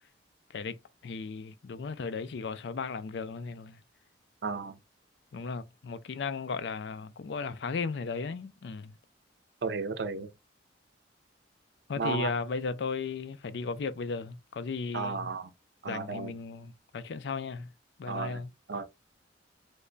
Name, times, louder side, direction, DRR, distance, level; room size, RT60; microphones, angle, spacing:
voice 1, 1.0-3.8 5.3-8.9 11.9-15.3 15.9-17.7 18.0-18.5, left 4 dB, 65° left, 0.4 m, -35 dB
voice 2, 4.4-4.8 9.6-10.3 12.0-12.3 14.9-15.5 15.8-16.3 18.1-18.4 18.7-18.8, right 4 dB, 60° right, 0.5 m, -33 dB
3.2 x 2.2 x 3.8 m
head